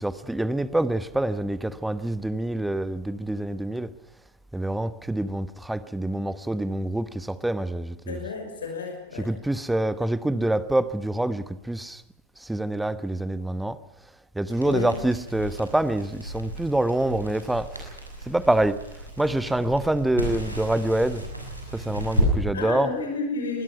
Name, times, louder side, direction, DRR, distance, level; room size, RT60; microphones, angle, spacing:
voice 1, 0.0-3.9 4.5-8.2 9.2-12.0 12.5-13.8 14.4-17.7 18.3-18.8 19.2-21.2 21.7-22.9, right 1 dB, 5° right, 1.1 m, -26 dB
voice 2, 8.1-9.3 14.6-14.9 22.5-23.6, left 3 dB, 65° left, 5.6 m, -31 dB
Crackle, 14.4-22.3, equal, 90° right, 6.3 m, -32 dB
25.0 x 20.5 x 5.7 m
figure-of-eight pair, 90°, 0 cm